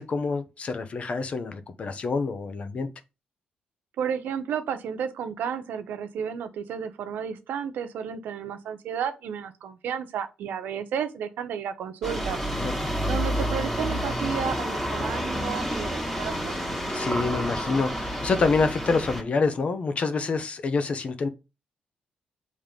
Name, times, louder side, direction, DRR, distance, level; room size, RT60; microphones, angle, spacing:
voice 1, 0.0-2.9 12.5-12.7 16.9-21.3, left 4 dB, 45° left, 0.9 m, -27 dB
voice 2, 4.0-12.4 13.1-16.6, right 7 dB, 90° right, 0.9 m, -32 dB
sound 1, 12.0-19.2, equal, 5° left, 1.9 m, -29 dB
7.4 x 3.3 x 5.2 m
cardioid pair, 120°, 3 cm